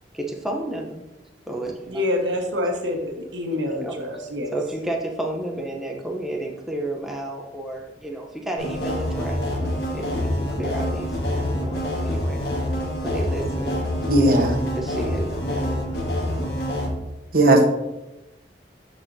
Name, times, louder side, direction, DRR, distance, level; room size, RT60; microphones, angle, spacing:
voice 1, 0.1-1.0 1.5-1.8 3.8-4.0 4.5-9.4 9.9-12.4 13.0-13.8 14.8-15.9, right 1 dB, ahead, 0 dB, 0.7 m, -31 dB
voice 2, 1.9-4.6, left 1 dB, 90° right, 3 dB, 1.2 m, -26 dB
sound 1, 8.6-16.9, left 1 dB, 65° left, 1.5 m, -26 dB
voice 3, 14.1-14.6 17.3-17.6, right 1 dB, 55° right, 2 dB, 1.0 m, -16 dB
12.0 x 4.1 x 2.7 m, 0.97 s
head